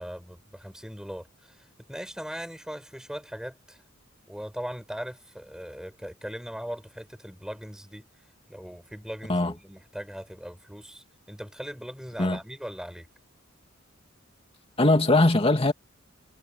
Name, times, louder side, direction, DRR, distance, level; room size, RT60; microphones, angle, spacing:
voice 1, 0.0-3.8 4.3-8.0 8.5-13.1, equal, 5° right, 5.2 m, -39 dB
voice 2, 14.8-15.7, left 2 dB, 30° left, 2.3 m, -20 dB
head